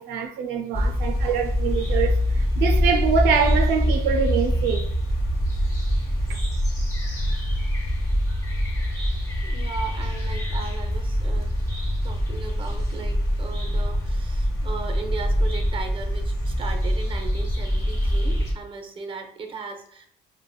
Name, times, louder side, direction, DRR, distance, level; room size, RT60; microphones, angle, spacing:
voice 1, 0.0-4.8 6.3-6.4, right 6 dB, 90° right, 0.4 m, -24 dB
sound 1, 0.7-18.5, equal, 20° left, 1.2 m, -24 dB
voice 2, 9.4-11.5 12.0-20.1, right 5 dB, 30° right, 0.6 m, -37 dB
4.8 x 2.1 x 2.2 m
cardioid pair, 110°, 17 cm